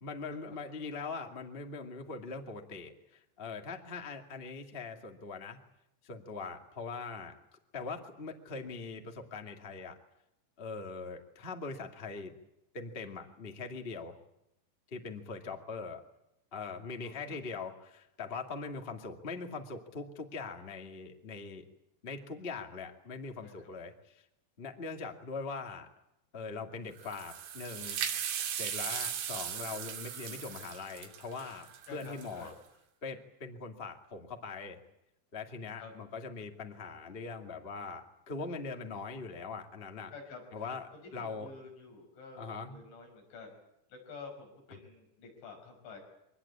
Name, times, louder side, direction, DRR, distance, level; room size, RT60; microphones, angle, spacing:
voice 1, 0.0-5.6 6.0-7.3 7.7-10.0 10.6-12.3 12.7-14.2 14.9-16.0 16.5-21.6 22.0-24.2 24.6-25.9 26.3-28.0 28.5-31.7 31.9-32.5 33.0-34.8 35.3-40.1 40.5-41.5 42.4-42.8, left 4 dB, 35° left, 3 dB, 0.9 m, -41 dB
voice 2, 17.0-17.3 23.4-23.7 31.9-32.5 35.7-35.9 40.1-40.6 40.9-43.6 43.9-46.0, left 4 dB, 85° left, 2 dB, 8.3 m, -50 dB
sound 1, 27.0-32.5, right 9 dB, 90° right, 4.6 m, -38 dB
24.5 x 19.0 x 8.6 m, 0.85 s
omnidirectional pair, 5.2 m